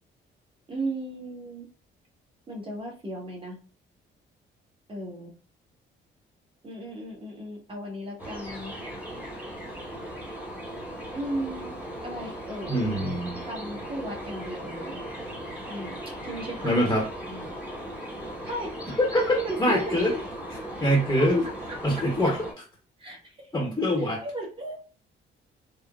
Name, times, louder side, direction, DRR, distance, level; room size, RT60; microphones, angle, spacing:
voice 1, 0.7-1.7 2.5-3.6 4.9-5.3 6.6-8.7 11.1-11.7 12.0-12.8 13.4-15.0 15.7-16.9 17.3-17.5 18.4-18.7 19.3-20.0 21.4-22.0 23.0-23.3 24.0-24.8, right 1 dB, 25° right, -1 dB, 1.3 m, -36 dB
sound 1, 8.2-22.5, equal, 5° right, 1.0 m, -38 dB
voice 2, 12.7-13.4 16.6-17.1 19.1-20.2 20.5-21.4 21.8-22.4 23.5-24.2, equal, 15° left, -1 dB, 0.9 m, -24 dB
3.6 x 2.1 x 2.3 m, 0.36 s
cardioid pair, 90°, 20 cm